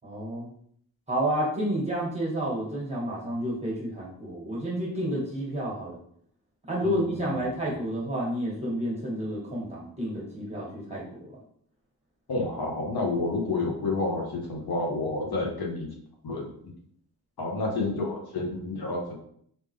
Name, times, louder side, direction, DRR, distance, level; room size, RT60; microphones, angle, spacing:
voice 1, 0.0-0.5 1.1-6.0 6.7-11.2, right 1 dB, 15° right, -4 dB, 1.4 m, -30 dB
voice 2, 6.8-7.4 7.6-7.7 12.3-15.9 16.2-16.7 17.4-19.2, left 2 dB, 65° left, -1 dB, 1.0 m, -30 dB
3.6 x 2.7 x 3.2 m, 0.65 s
wide cardioid pair, 125°, 39 cm